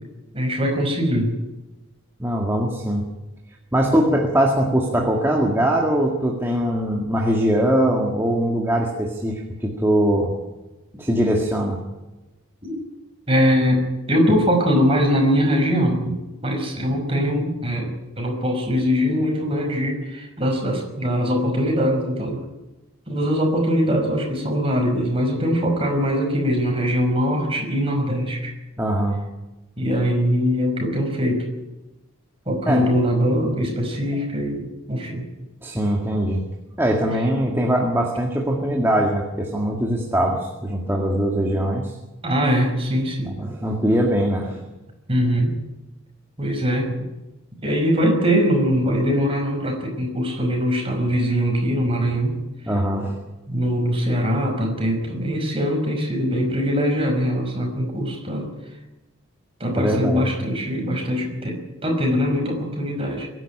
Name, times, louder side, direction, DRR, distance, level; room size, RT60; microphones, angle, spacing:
voice 1, 0.3-1.3 12.6-12.7 13.3-16.2 16.4-17.9 18.2-22.4 23.1-28.5 29.8-31.5 32.5-35.2 42.2-43.3 45.1-45.6 46.4-47.0 47.6-52.4 53.5-58.5 59.6-63.3, equal, 25° right, 2 dB, 5.5 m, -22 dB
voice 2, 2.2-3.0 3.7-10.3 10.9-11.8 28.8-29.2 32.7-32.8 35.6-36.5 36.8-41.9 43.3-44.6 52.7-53.2 59.8-60.3, right 1 dB, 10° right, -1 dB, 2.0 m, -21 dB
23.5 x 11.0 x 10.0 m, 1.1 s
head